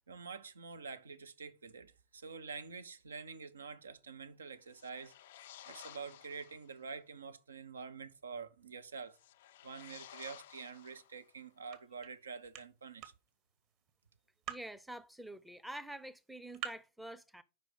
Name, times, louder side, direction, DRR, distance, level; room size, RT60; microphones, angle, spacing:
voice 1, 0.1-5.1 5.7-9.2 9.6-13.1, right 5 dB, 70° right, 0.6 m, -47 dB
sound 1, 4.7-6.7 9.1-11.4, left 12 dB, 55° left, 0.3 m, -55 dB
sound 2, 10.3-16.9, right 9 dB, 40° right, 1.2 m, -51 dB
voice 2, 14.5-17.4, right 1 dB, ahead, 0.6 m, -47 dB
5.3 x 4.7 x 6.1 m
figure-of-eight pair, 90°, 0 cm